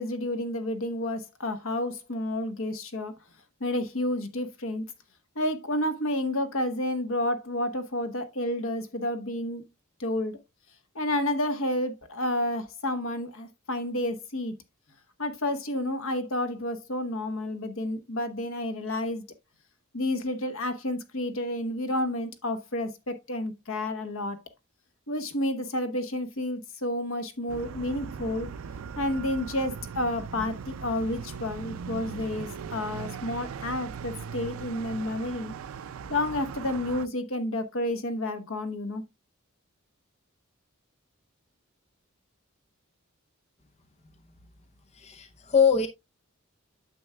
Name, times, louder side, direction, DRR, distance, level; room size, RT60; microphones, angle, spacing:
voice 1, 0.0-3.1 3.6-4.8 5.3-9.6 10.0-10.4 10.9-14.5 15.2-19.3 19.9-24.4 25.1-28.5 29.0-35.5 36.1-39.0, left 1 dB, 70° left, 1.3 m, -30 dB
sound 1, 27.5-37.1, right 6 dB, 75° right, 0.4 m, -39 dB
voice 2, 45.0-45.9, left 6 dB, 30° left, 0.6 m, -23 dB
9.4 x 7.0 x 2.3 m
head